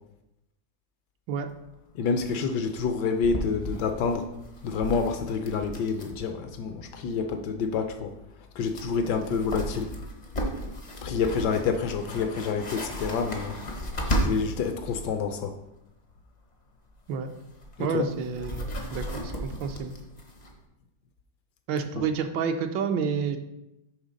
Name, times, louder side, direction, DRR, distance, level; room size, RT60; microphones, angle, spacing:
sound 1, 1.5-1.6 1.7-1.8 2.1-2.3 2.7-6.3 6.5-6.6 8.3-8.4 8.7-15.1 16.9-20.6, equal, 45° left, 0.5 m, -35 dB
voice 1, 1.9-4.3 4.6-8.1 8.6-9.9 11.0-13.6 14.1-15.5 17.8-18.0, left 5 dB, 75° left, 7 dB, 1.1 m, -28 dB
voice 2, 17.8-19.9 21.7-23.4, right 6 dB, 80° right, 7 dB, 1.3 m, -29 dB
6.4 x 3.5 x 5.1 m, 0.89 s
omnidirectional pair, 2.0 m